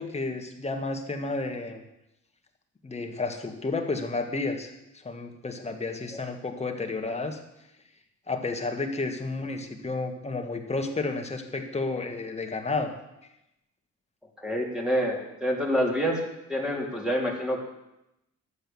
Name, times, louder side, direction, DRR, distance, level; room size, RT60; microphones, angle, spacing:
voice 1, 0.0-1.8 2.8-4.7 5.0-7.4 8.3-12.9, left 3 dB, 20° left, 4 dB, 1.8 m, -31 dB
voice 2, 14.4-16.2 16.5-17.6, equal, 5° right, -1 dB, 3.0 m, -27 dB
11.5 x 7.9 x 7.1 m, 0.89 s
cardioid pair, 90°, 30 cm